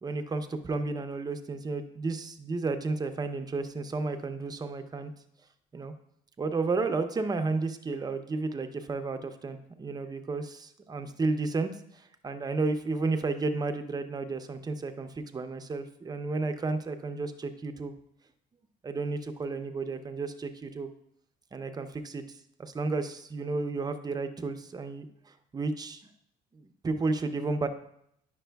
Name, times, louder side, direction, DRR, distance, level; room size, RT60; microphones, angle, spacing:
voice 1, 0.0-5.1 5.7-5.9 6.4-18.0 18.8-20.9 21.5-26.0 26.5-27.7, right 3 dB, 25° right, 7 dB, 0.6 m, -32 dB
10.0 x 5.9 x 2.3 m, 0.73 s
cardioid pair, 110°, 17 cm